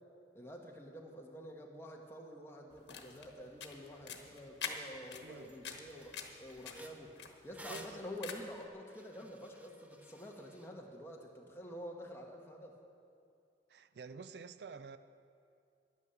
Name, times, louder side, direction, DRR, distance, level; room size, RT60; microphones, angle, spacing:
voice 1, 0.3-6.1 6.4-12.8, equal, 15° left, 0 dB, 1.2 m, -48 dB
sound 1, 2.7-8.6, left 6 dB, 80° left, 1.2 m, -47 dB
sound 2, 4.9-5.0 5.4-5.6 5.9-10.7, equal, 10° right, 0.6 m, -55 dB
voice 2, 5.2-5.5 7.7-8.0 13.7-15.0, right 5 dB, 70° right, 13 dB, 0.4 m, -49 dB
11.0 x 9.6 x 7.0 m, 2.5 s
head